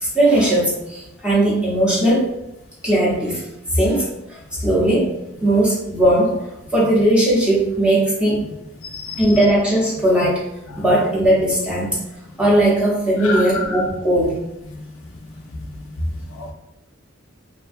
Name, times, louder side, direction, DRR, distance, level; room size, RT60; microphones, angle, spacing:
voice 1, 0.0-2.2 2.8-3.5 3.7-6.4 6.7-8.4 9.2-10.4 10.8-12.0 12.4-14.4, right 1 dB, 5° right, -7 dB, 0.7 m, -18 dB
voice 2, 8.8-9.3 13.2-13.8 16.3-16.5, left 3 dB, 90° left, 2 dB, 0.4 m, -28 dB
2.5 x 2.2 x 2.4 m, 0.91 s
head